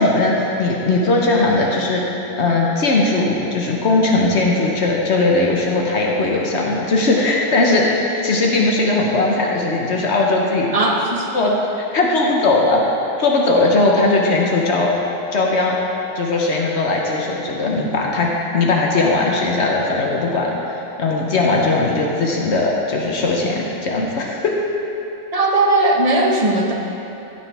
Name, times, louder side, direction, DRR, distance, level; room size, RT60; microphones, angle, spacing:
voice 1, 0.0-10.7 11.3-11.5 11.9-14.9 15.3-15.8 16.1-24.6, left 2 dB, 75° left, -2 dB, 1.3 m, -18 dB
voice 2, 10.7-11.3 25.3-26.7, right 2 dB, 35° right, -1 dB, 1.1 m, -17 dB
15.5 x 7.0 x 3.4 m, 2.9 s
omnidirectional pair, 1.2 m